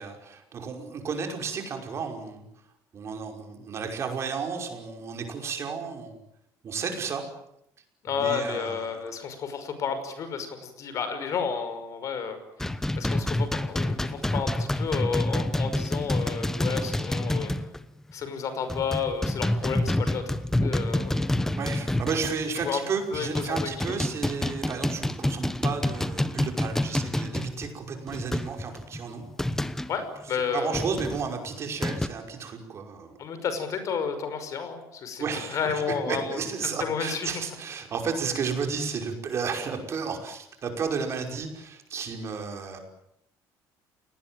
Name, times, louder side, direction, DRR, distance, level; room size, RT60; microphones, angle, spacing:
voice 1, 0.0-2.5 2.9-6.2 6.6-7.2 8.1-9.1 21.6-29.2 30.5-33.2 35.2-42.8, right 5 dB, 35° right, 4 dB, 5.5 m, -33 dB
voice 2, 8.0-12.4 13.0-17.5 18.1-20.2 20.6-21.6 22.6-22.8 23.1-24.0 29.9-30.8 33.2-36.4 36.8-37.3, left 6 dB, 45° left, 10 dB, 5.7 m, -31 dB
sound 1, 12.6-17.8 18.1-18.3 18.7-22.7 23.1-30.0 30.7-32.1, left 1 dB, 5° left, 1.0 m, -28 dB
29.0 x 19.5 x 9.2 m, 0.79 s
cardioid pair, 160°, 8 cm